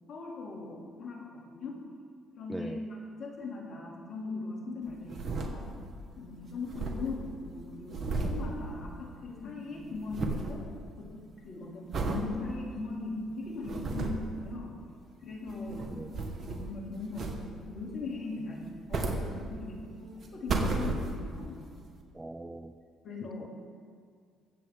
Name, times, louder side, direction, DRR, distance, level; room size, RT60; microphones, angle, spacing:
voice 1, 0.1-1.8 2.4-5.8 6.2-11.2 11.4-14.8 15.2-16.0 16.4-21.7 23.0-23.5, left 3 dB, 55° left, -1 dB, 2.7 m, -39 dB
voice 2, 2.5-2.8 15.9-16.1 22.1-22.7 23.4-23.5, right 2 dB, 20° right, 11 dB, 0.6 m, -40 dB
sound 1, 4.9-6.0 6.3-6.4 6.5-9.3 9.6-10.6 11.0-11.4 11.9-12.3 12.8-12.9 13.4-14.3 15.3-16.8 17.1-17.7 18.6-19.8 20.2-21.4 22.0-22.1, right 3 dB, 50° right, 1.5 m, -34 dB
23.0 x 7.8 x 3.7 m, 2.1 s
hypercardioid pair, 55°, 0 cm